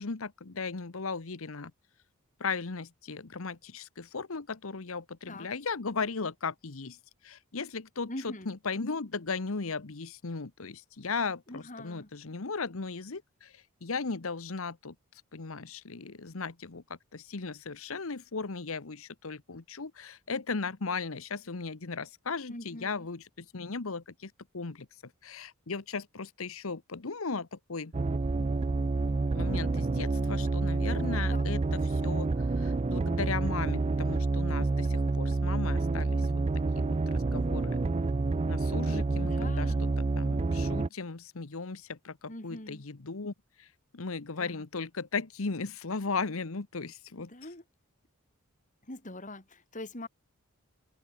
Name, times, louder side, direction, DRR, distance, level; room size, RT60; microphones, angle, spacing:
voice 1, 0.0-1.7 2.4-16.8 17.1-27.9 29.3-37.8 38.5-47.3, left 4 dB, 70° left, 1.1 m, -37 dB
voice 2, 8.1-8.5 11.5-12.1 22.5-23.1 31.3-31.4 39.2-39.8 42.3-42.8 44.4-44.6 47.2-47.6 48.8-50.1, left 1 dB, 35° left, 4.4 m, -43 dB
sound 1, 27.9-40.9, right 3 dB, 30° right, 0.4 m, -28 dB
open air
head